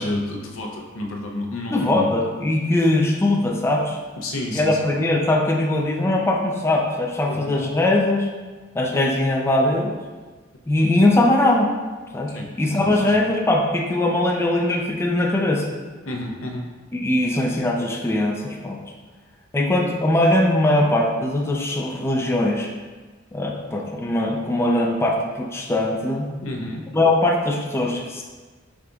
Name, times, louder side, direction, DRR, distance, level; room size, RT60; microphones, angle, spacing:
voice 1, 0.0-2.1 4.2-4.8 7.3-7.5 12.3-12.5 12.8-13.1 16.0-16.7 17.2-17.3 26.4-26.8, left 1 dB, 80° left, 1 dB, 0.7 m, -30 dB
voice 2, 1.7-4.0 4.5-8.3 8.7-9.9 10.7-11.7 12.1-15.7 16.9-18.8 19.5-22.7 23.3-26.3 26.9-28.2, left 1 dB, 15° left, 0 dB, 0.3 m, -21 dB
4.9 x 3.8 x 2.3 m, 1.4 s
head